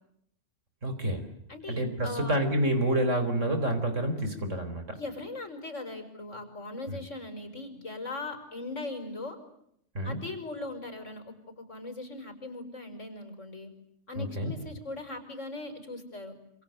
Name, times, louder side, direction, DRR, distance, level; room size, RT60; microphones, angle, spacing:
voice 1, 0.8-1.3 1.7-5.0 6.9-7.0 9.9-10.2 14.2-14.5, right 1 dB, 75° right, 8 dB, 4.6 m, -28 dB
voice 2, 2.0-2.4 4.9-9.4 10.0-11.3 11.7-13.7 14.1-16.3, left 2 dB, 75° left, 8 dB, 5.7 m, -39 dB
27.0 x 27.0 x 7.9 m, 0.74 s
omnidirectional pair, 1.3 m